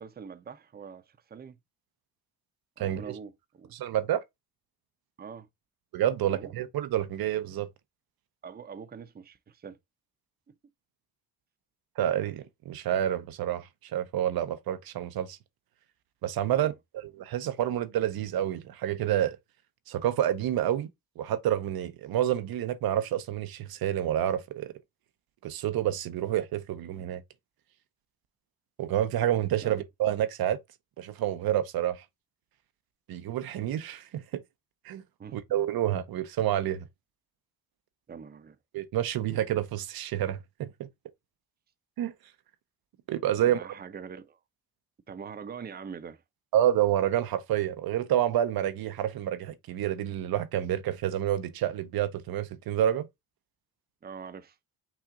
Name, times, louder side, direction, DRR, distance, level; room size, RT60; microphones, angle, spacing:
voice 1, 0.0-1.6 2.8-3.7 5.2-5.5 6.2-6.5 8.4-9.8 16.5-16.7 29.6-29.8 35.2-35.4 38.1-38.6 43.4-44.4 45.1-46.2 54.0-54.6, right 6 dB, 25° right, 0.6 m, -43 dB
voice 2, 2.8-3.1 3.7-4.2 5.9-7.7 12.0-15.4 16.2-19.4 19.9-20.9 21.2-24.7 25.4-27.2 28.8-30.6 31.0-32.0 33.1-34.4 34.8-35.0 35.3-36.9 38.7-40.9 42.0-42.1 43.1-43.6 46.5-53.1, right 11 dB, 80° right, 0.7 m, -28 dB
5.8 x 2.5 x 3.7 m
cardioid pair, 100°, 36 cm